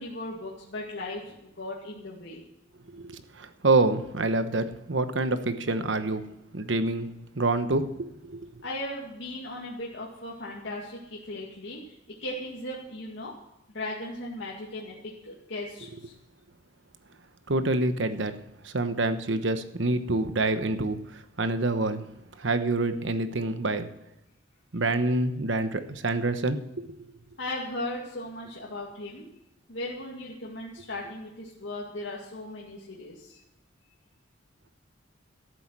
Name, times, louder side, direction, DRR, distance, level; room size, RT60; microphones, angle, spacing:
voice 1, 0.0-2.4 8.6-12.0 12.2-13.3 13.7-16.1 27.4-29.3 29.7-33.4, left 1 dB, 70° left, -4 dB, 2.2 m, -37 dB
voice 2, 2.9-6.2 6.5-7.1 7.3-8.5 17.5-18.3 18.6-22.1 22.4-23.9 24.7-26.6, right 2 dB, 70° right, 10 dB, 1.1 m, -27 dB
14.0 x 7.9 x 7.5 m, 0.86 s
head